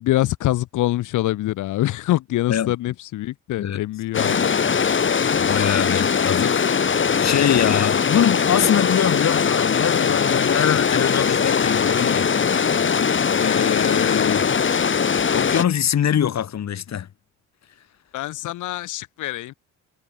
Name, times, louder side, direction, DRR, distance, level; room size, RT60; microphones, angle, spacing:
voice 1, 0.0-4.5 18.1-19.5, left 15 dB, 85° left, 1.4 m, -24 dB
sound 1, 4.1-15.6, left 6 dB, 40° left, 3.0 m, -20 dB
voice 2, 5.4-6.6 7.2-12.8 13.3-14.5 15.3-17.1, left 9 dB, 60° left, 7.7 m, -23 dB
cardioid pair, 90°, 30 cm